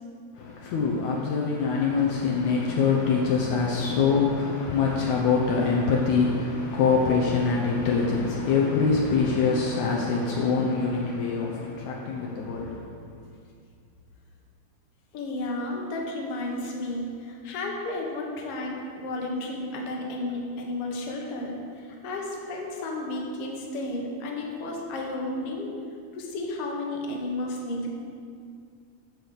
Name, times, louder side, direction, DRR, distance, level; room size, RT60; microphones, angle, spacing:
voice 1, 0.3-13.0, left 5 dB, 85° left, -2 dB, 1.6 m, -24 dB
voice 2, 15.1-25.7 26.1-27.9, left 2 dB, 60° left, -1 dB, 1.6 m, -32 dB
9.8 x 6.4 x 7.1 m, 2.3 s
omnidirectional pair, 4.6 m